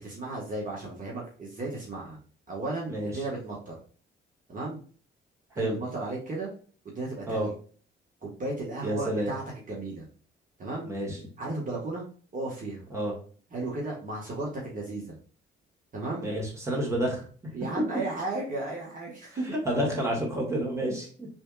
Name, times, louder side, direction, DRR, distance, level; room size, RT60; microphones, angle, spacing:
voice 1, 0.0-2.2 2.5-3.8 4.5-4.8 5.6-6.5 7.0-7.5 8.2-10.1 10.6-10.9 11.4-12.1 12.3-12.8 13.5-15.2 15.9-16.3 17.5-19.5, right 2 dB, 40° right, -3 dB, 1.7 m, -34 dB
voice 2, 8.8-9.3 10.8-11.2 12.9-13.1 16.2-17.2 19.6-21.3, right 1 dB, 15° right, -3 dB, 2.1 m, -29 dB
5.0 x 3.6 x 2.5 m, 0.42 s
cardioid pair, 90°, 20 cm